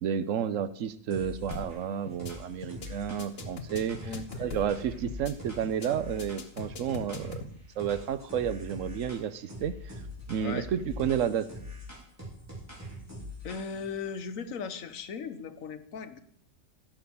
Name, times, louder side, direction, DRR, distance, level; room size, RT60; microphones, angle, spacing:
voice 1, 0.0-4.0 4.4-7.5 7.8-9.9 10.3-11.5, right 8 dB, 75° right, 13 dB, 1.1 m, -31 dB
sound 1, 1.1-1.8 2.2-7.5 7.8-9.2 9.5-13.9, left 1 dB, 10° right, 3.2 m, -43 dB
sound 2, 1.5-1.8 2.1-2.3 2.6-2.9 3.2-4.8 5.1-5.3 5.6-5.9 6.2-7.5, left 5 dB, 50° left, 1.3 m, -41 dB
voice 2, 10.4-10.7 13.4-16.2, left 5 dB, 85° left, 10 dB, 1.4 m, -37 dB
15.5 x 5.9 x 7.0 m, 0.70 s
omnidirectional pair, 1.4 m